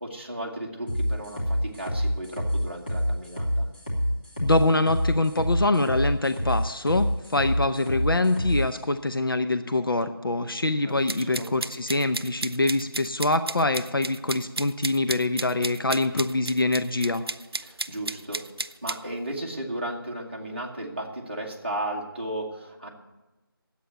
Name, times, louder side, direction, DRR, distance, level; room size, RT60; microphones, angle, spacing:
voice 1, 0.0-3.7 10.8-11.5 17.6-18.4 18.8-22.9, right 1 dB, 30° right, -3 dB, 1.6 m, -35 dB
sound 1, 0.9-8.6, equal, 25° left, 2.4 m, -27 dB
voice 2, 4.4-17.2, left 2 dB, 65° left, 9 dB, 0.7 m, -24 dB
sound 2, 11.1-19.0, right 3 dB, 90° right, 0.5 m, -33 dB
10.5 x 8.4 x 9.1 m, 1.1 s
figure-of-eight pair, 180°, 12 cm